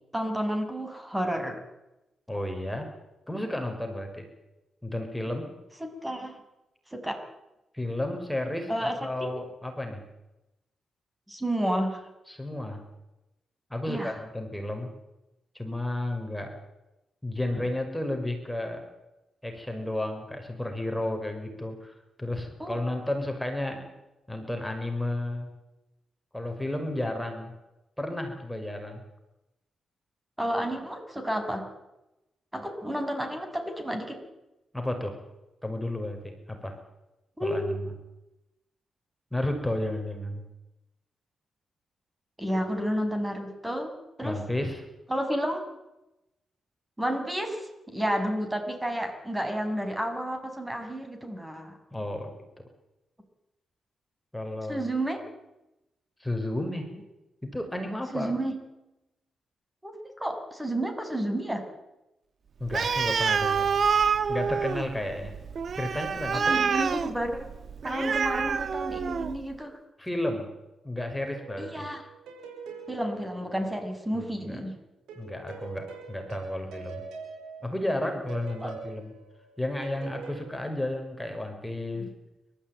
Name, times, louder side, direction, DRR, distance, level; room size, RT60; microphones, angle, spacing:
voice 1, 0.1-1.6 5.8-6.4 6.9-7.2 8.7-9.3 11.3-12.1 13.9-14.2 22.6-22.8 30.4-31.7 32.5-34.2 37.4-37.7 42.4-44.4 45.1-45.6 47.0-51.7 54.7-55.2 58.1-58.5 59.8-59.9 60.2-61.6 66.3-67.5 67.8-69.8 71.6-72.0 72.9-74.8 78.6-78.7 82.0-82.1, right 1 dB, 10° right, 6 dB, 6.3 m, -31 dB
voice 2, 2.3-2.9 3.3-4.2 4.8-5.5 7.7-10.0 12.3-12.8 13.7-14.9 15.5-16.5 17.2-18.9 19.4-23.8 24.3-25.5 26.3-27.5 28.0-29.0 34.7-35.2 35.6-36.8 37.4-37.9 39.3-40.4 44.2-44.9 51.9-52.3 54.3-54.9 56.2-56.9 57.4-58.3 62.6-63.6 64.3-65.3 65.7-66.6 70.0-70.5 70.8-71.9 74.1-74.6 75.2-77.0 77.6-79.1 79.6-82.1, left 1 dB, 5° left, 4 dB, 5.6 m, -32 dB
Animal, 62.7-69.4, right 6 dB, 55° right, 1.3 m, -27 dB
sound 1, 71.3-74.2 75.1-80.5, right 5 dB, 90° right, 6.9 m, -44 dB
29.0 x 14.0 x 9.2 m, 0.96 s
supercardioid pair, 60°, 0 cm